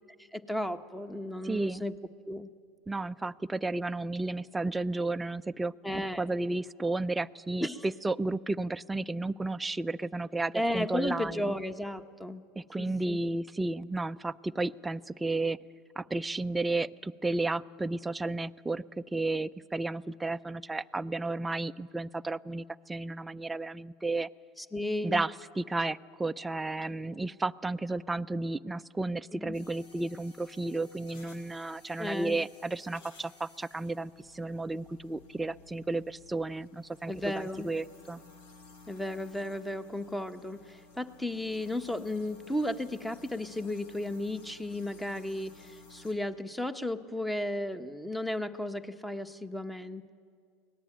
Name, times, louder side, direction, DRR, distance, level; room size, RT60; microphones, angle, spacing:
voice 1, 0.3-1.9 2.3-2.5 5.8-6.3 7.6-7.9 10.5-12.4 12.8-13.2 24.6-25.2 29.4-29.6 32.0-32.4 37.1-37.7 38.9-50.1, left 1 dB, 5° left, 10 dB, 1.2 m, -34 dB
voice 2, 1.4-1.8 2.9-11.5 12.6-15.6 16.0-24.3 25.0-38.2, right 2 dB, 10° right, 10 dB, 0.5 m, -33 dB
sound 1, 29.5-46.1, left 3 dB, 75° left, 3.6 m, -56 dB
23.5 x 18.5 x 9.0 m, 2.1 s
hypercardioid pair, 95°, 0 cm